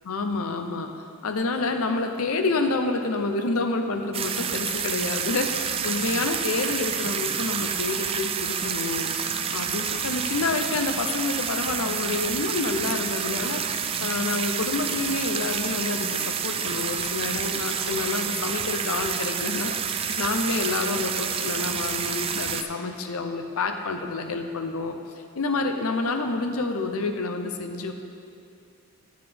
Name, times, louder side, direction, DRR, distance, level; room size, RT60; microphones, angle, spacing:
voice 1, 0.0-0.9 1.2-9.1 9.5-25.0 25.3-27.9, left 3 dB, 75° left, 5 dB, 0.7 m, -28 dB
sound 1, 4.1-22.6, right 7 dB, 25° right, 0.3 m, -29 dB
10.5 x 9.9 x 3.4 m, 2.5 s
head